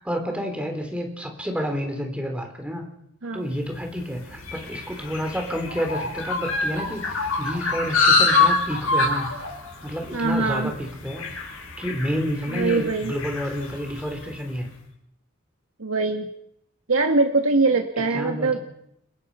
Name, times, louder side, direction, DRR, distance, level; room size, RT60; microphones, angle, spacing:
voice 1, 0.0-2.9 3.3-9.3 9.8-11.3 11.8-14.7 18.1-18.6, equal, 5° right, 3 dB, 3.8 m, -29 dB
sound 1, 3.8-14.3, left 3 dB, 85° left, 6.3 m, -26 dB
voice 2, 10.1-10.7 12.5-13.1 15.8-16.3 16.9-18.6, right 3 dB, 90° right, 4 dB, 1.7 m, -22 dB
30.0 x 16.5 x 5.6 m, 0.76 s
head